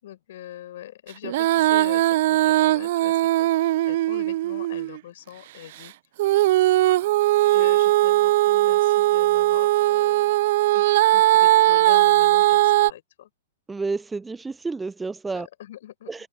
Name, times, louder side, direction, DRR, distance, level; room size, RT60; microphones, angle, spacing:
voice 1, 0.0-5.9 7.4-10.3 10.6-13.3 15.3-16.3, left 13 dB, 60° left, 5.4 m, -42 dB
Female singing, 1.2-5.0 6.2-12.9, right 16 dB, 55° right, 0.6 m, -19 dB
voice 2, 13.7-15.5 16.1-16.3, right 4 dB, 10° right, 0.4 m, -30 dB
figure-of-eight pair, 110°, 0 cm